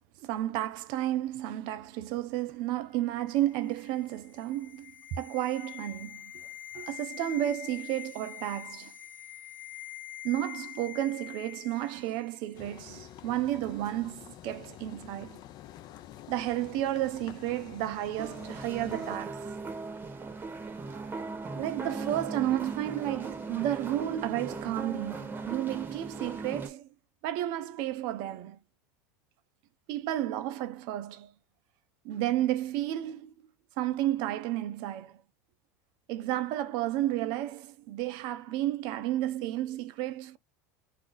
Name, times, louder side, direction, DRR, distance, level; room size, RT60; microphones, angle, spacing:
voice 1, 0.2-6.5 6.7-8.9 10.2-15.4 16.3-19.5 21.6-26.9 27.2-28.6 29.9-31.3 32.0-33.3 33.8-35.2 36.1-40.4, right 13 dB, 60° right, 0.5 m, -32 dB
sound 1, 3.1-12.4 12.6-12.8, left 13 dB, 20° left, 0.8 m, -45 dB
sound 2, 12.5-19.2, left 12 dB, 45° left, 0.4 m, -48 dB
sound 3, 18.2-26.7, right 3 dB, 20° right, 0.8 m, -38 dB
2.4 x 2.0 x 3.8 m
hypercardioid pair, 100°, 9 cm